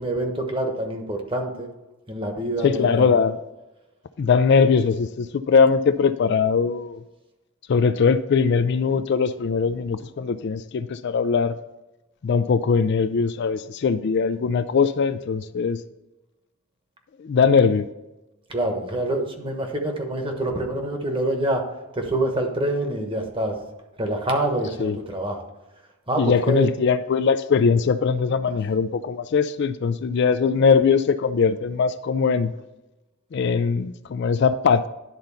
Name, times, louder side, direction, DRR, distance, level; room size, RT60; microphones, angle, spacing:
voice 1, 0.0-1.7 2.1-3.1 18.5-21.7 21.9-23.6 24.0-25.4 26.1-26.7, right 1 dB, 25° right, 3 dB, 1.1 m, -26 dB
voice 2, 2.6-3.4 4.2-7.0 7.7-11.6 12.2-15.8 17.2-17.9 24.8-25.0 26.2-32.5 33.3-34.9, left 5 dB, 55° left, 12 dB, 0.3 m, -21 dB
10.5 x 3.9 x 5.6 m, 1.0 s
head